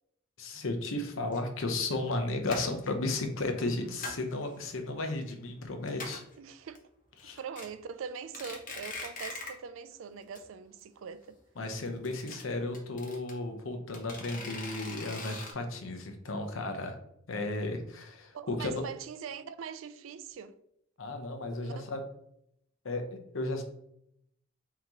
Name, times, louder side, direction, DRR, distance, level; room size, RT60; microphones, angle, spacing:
voice 1, 0.4-6.2 7.2-7.4 11.6-17.0 17.3-18.8 21.0-22.0 22.8-23.1 23.3-23.6, left 2 dB, 85° left, 0.8 m, -34 dB
sound 1, 1.3-1.4 1.9-2.1 2.5-2.9 3.6-4.3 4.7-5.3 5.6-5.7 5.9-6.3 6.7-6.8 7.2-7.7 8.1-9.7 9.9-10.0 10.3-10.4 10.7-10.8 11.9-13.3 13.9-15.5, left 3 dB, 40° left, 0.9 m, -42 dB
voice 2, 6.4-6.8 7.4-11.4 18.3-20.5 21.6-21.7, right 6 dB, 85° right, 0.4 m, -42 dB
5.6 x 2.9 x 2.9 m
head